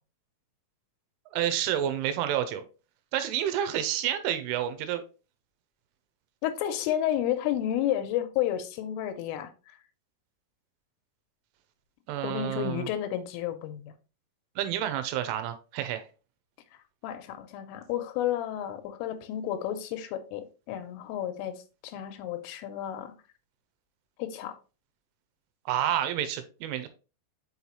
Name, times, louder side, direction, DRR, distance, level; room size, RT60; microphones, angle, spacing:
voice 1, 1.3-2.6 3.1-5.0 12.1-12.9 14.6-16.0 25.7-26.9, right 11 dB, 85° right, 3.2 m, -29 dB
voice 2, 6.4-9.7 12.2-13.9 17.0-23.1 24.2-24.6, left 11 dB, 85° left, 3.4 m, -31 dB
6.5 x 5.5 x 3.1 m
omnidirectional pair, 5.6 m